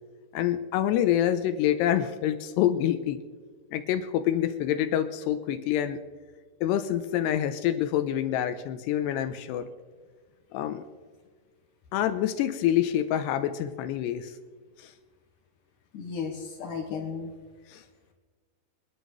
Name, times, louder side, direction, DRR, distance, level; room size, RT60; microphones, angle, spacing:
voice 1, 0.3-3.2 3.7-6.0 6.6-9.7 10.5-10.8 11.9-14.4 14.8-14.9 17.7-17.8, left 11 dB, 80° left, 10 dB, 2.5 m, -26 dB
voice 2, 15.9-17.3, left 6 dB, 60° left, -1 dB, 2.4 m, -34 dB
24.5 x 11.0 x 3.1 m, 1.5 s
omnidirectional pair, 5.2 m